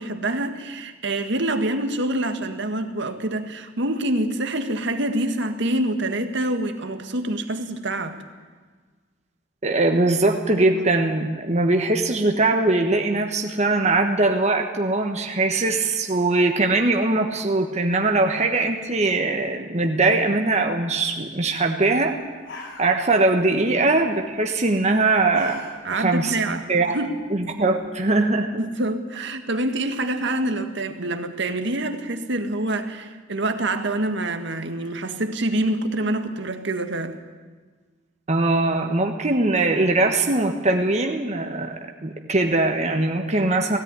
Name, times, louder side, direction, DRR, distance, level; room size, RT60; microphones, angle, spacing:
voice 1, 0.0-8.2 25.8-26.7 26.9-27.2 28.6-37.2, right 1 dB, 65° right, 7 dB, 1.8 m, -26 dB
voice 2, 9.6-22.2 22.8-25.6 25.9-26.3 26.7-27.0 27.3-28.5 38.3-43.8, right 2 dB, 35° right, 3 dB, 1.3 m, -21 dB
sound 1, 22.0-22.1 22.3-23.3 23.6-24.0 25.0-26.1 26.5-26.6 27.1-28.1, left 2 dB, 80° left, 4.9 m, -41 dB
17.0 x 16.5 x 9.7 m, 1.4 s
head